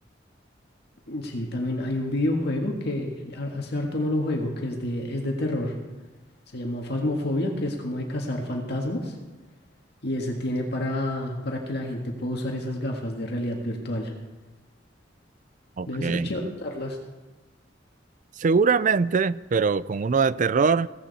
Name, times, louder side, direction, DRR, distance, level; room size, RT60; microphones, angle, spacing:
voice 1, 1.1-5.7 6.5-9.2 10.0-14.1 15.9-17.0, left 1 dB, 60° left, 1.9 m, -29 dB
voice 2, 15.8-16.3 18.4-20.9, right 5 dB, 45° right, 0.4 m, -22 dB
16.5 x 16.0 x 4.2 m
head